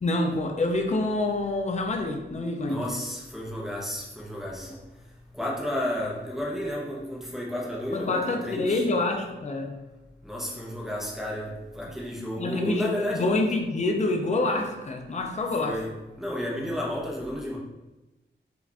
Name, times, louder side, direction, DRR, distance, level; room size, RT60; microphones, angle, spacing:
voice 1, 0.0-2.8 7.9-9.7 12.4-15.8, left 2 dB, 35° left, 3 dB, 0.5 m, -27 dB
voice 2, 2.6-4.7 5.3-8.9 10.2-13.3 15.6-17.6, equal, ahead, -4 dB, 0.9 m, -32 dB
4.9 x 2.5 x 3.4 m, 1.1 s
wide cardioid pair, 145°, 20 cm